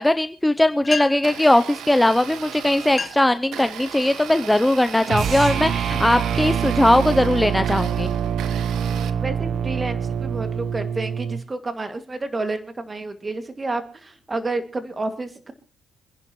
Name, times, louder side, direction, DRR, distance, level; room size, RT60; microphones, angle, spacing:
voice 1, 0.0-8.1, left 1 dB, 10° left, 10 dB, 0.6 m, -19 dB
sound 1, 0.6-0.7 0.8-1.4 2.3-2.4 2.8-3.4 3.9-4.2 4.9-5.1 5.7-6.9, left 4 dB, 35° left, 1.0 m, -34 dB
Domestic sounds home sounds, 1.1-9.1, right 9 dB, 80° right, 1.2 m, -37 dB
sound 2, 5.1-11.4, right 8 dB, 60° right, 0.8 m, -25 dB
voice 2, 9.2-15.5, right 2 dB, 25° right, 7 dB, 2.2 m, -30 dB
27.0 x 10.5 x 3.1 m, 0.35 s
cardioid pair, 90°, 0 cm